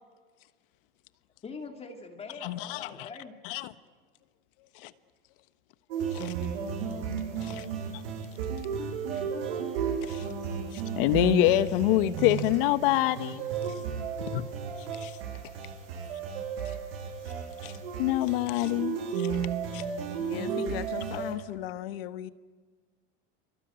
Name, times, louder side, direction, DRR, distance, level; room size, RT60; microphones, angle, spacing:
voice 1, 1.4-3.4 13.8-14.0, left 4 dB, 20° left, 2.4 m, -43 dB
voice 2, 2.4-2.9 3.4-3.7 4.8-4.9 6.1-6.3 7.4-7.6 10.0-10.2 10.7-13.4 14.3-14.4 15.0-15.1 17.6-17.7 18.0-19.3 19.7-19.8, left 15 dB, 70° left, 1.4 m, -26 dB
sound 1, 5.9-21.3, right 7 dB, 85° right, 7.2 m, -33 dB
voice 3, 20.2-22.3, left 13 dB, 85° left, 1.2 m, -37 dB
28.0 x 23.5 x 9.0 m
supercardioid pair, 130°, 29 cm